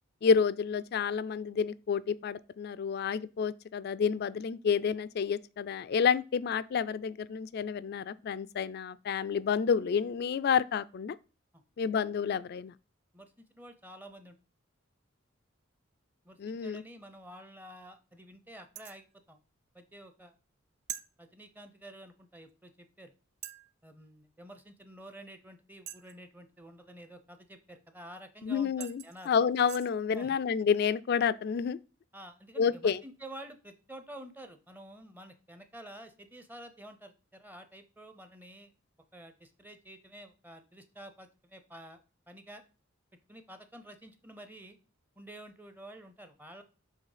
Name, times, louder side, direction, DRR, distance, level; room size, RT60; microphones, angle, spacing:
voice 1, 0.2-11.2 11.8-12.7 16.4-16.8 28.4-31.8 32.6-33.0, left 6 dB, 50° left, 0.3 m, -29 dB
voice 2, 13.1-14.4 16.2-19.4 19.7-20.3 21.2-23.1 23.8-29.5 30.1-30.4 32.1-38.7 39.1-42.0 42.3-42.6 43.3-44.8 45.2-46.6, right 1 dB, 10° right, 0.6 m, -50 dB
sound 1, 18.8-19.1 20.9-21.1 22.5-22.6 23.4-23.7 25.9-26.3 28.3-28.4 28.8-29.9, right 11 dB, 55° right, 0.4 m, -43 dB
6.6 x 3.2 x 4.9 m
head